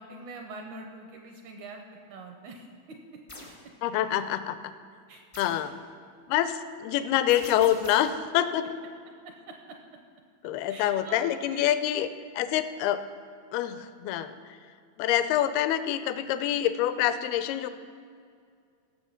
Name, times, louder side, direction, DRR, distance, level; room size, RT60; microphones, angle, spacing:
voice 1, 0.0-1.8 2.1-3.0 5.1-5.2 5.5-5.6 9.3-9.8 10.7-11.8 12.4-12.6, right 3 dB, 75° right, 3 dB, 1.9 m, -44 dB
sound 1, 3.3-3.6 5.3-5.7 7.3-8.2, left 1 dB, 45° left, 0.4 m, -44 dB
voice 2, 3.8-4.6 5.4-5.7 6.3-8.7 10.4-12.1 12.4-13.0 13.5-14.3 15.0-17.7, left 11 dB, 85° left, 11 dB, 2.5 m, -26 dB
16.5 x 7.3 x 5.7 m, 2.3 s
omnidirectional pair, 4.4 m